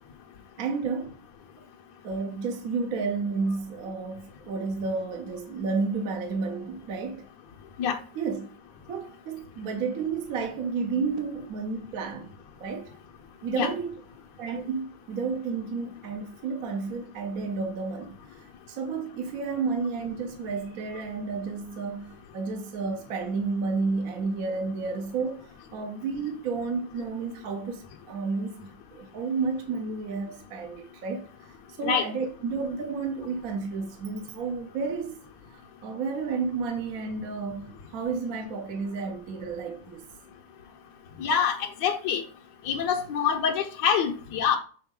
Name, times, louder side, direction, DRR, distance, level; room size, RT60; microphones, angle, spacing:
voice 1, 0.6-1.1 1.6-1.7 2.0-7.3 8.2-8.5 8.9-12.3 12.6-12.9 13.4-14.0 14.4-35.1 35.5-40.0, right 4 dB, 60° right, 1.1 m, -31 dB
voice 2, 41.2-42.2 42.6-44.6, left 7 dB, 70° left, 1.5 m, -25 dB
7.1 x 4.0 x 3.6 m
omnidirectional pair, 2.0 m